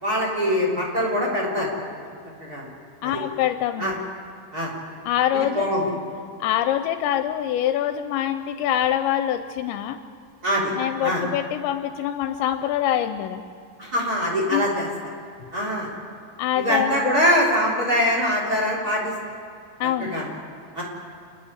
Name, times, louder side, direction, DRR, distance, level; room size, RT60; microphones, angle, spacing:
voice 1, 0.0-1.7 2.4-2.7 3.0-3.2 3.8-3.9 4.5-4.7 5.6-5.9 10.4-10.7 11.0-11.2 13.8-14.9 15.5-15.9 16.6-19.1 20.0-20.3 20.7-20.8, equal, 20° right, -2 dB, 3.6 m, -23 dB
voice 2, 3.0-3.9 5.0-5.7 6.4-10.0 10.8-13.4 14.5-14.7 16.4-16.9 19.8-20.2, left 11 dB, 80° left, 9 dB, 2.8 m, -24 dB
28.5 x 10.5 x 9.5 m, 2.3 s
omnidirectional pair, 5.4 m